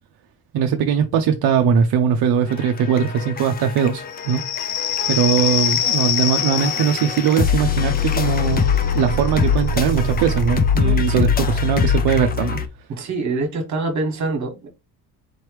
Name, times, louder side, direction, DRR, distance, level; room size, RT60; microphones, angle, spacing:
voice 1, 0.5-4.4 5.1-12.6, right 7 dB, 70° right, 0.6 m, -20 dB
sound 1, 2.5-12.7, left 5 dB, 25° left, 0.4 m, -23 dB
sound 2, 4.1-11.4, left 10 dB, 85° left, 0.7 m, -26 dB
voice 2, 10.8-11.3 12.9-14.7, right 3 dB, 45° right, 1.4 m, -25 dB
4.2 x 3.1 x 3.1 m
cardioid pair, 150°, 40 cm